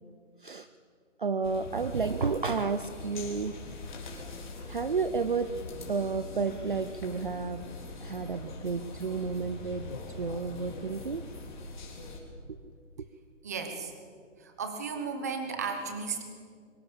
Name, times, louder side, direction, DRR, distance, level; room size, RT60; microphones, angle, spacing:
voice 1, 1.2-3.6 4.7-5.5 5.9-7.7 8.0-9.9 10.2-11.2 12.5-12.6 13.0-13.1, right 5 dB, 40° right, 11 dB, 0.7 m, -31 dB
sound 1, 1.4-12.2, left 3 dB, 35° left, 3.9 m, -42 dB
voice 2, 13.4-13.9 14.4-16.2, right 5 dB, 15° right, 6 dB, 1.1 m, -34 dB
24.0 x 24.0 x 7.1 m, 2.1 s
hypercardioid pair, 180°, 38 cm